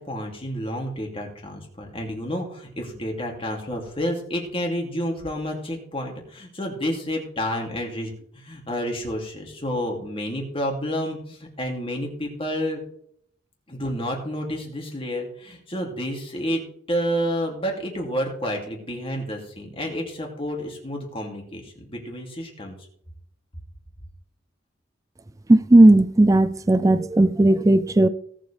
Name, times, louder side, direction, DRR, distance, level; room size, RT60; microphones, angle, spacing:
voice 1, 0.0-12.8 13.7-16.6 16.9-22.7, equal, 30° left, 2.8 m, -30 dB
voice 2, 25.5-28.1, right 1 dB, 15° right, 0.4 m, -15 dB
18.0 x 7.5 x 3.5 m
head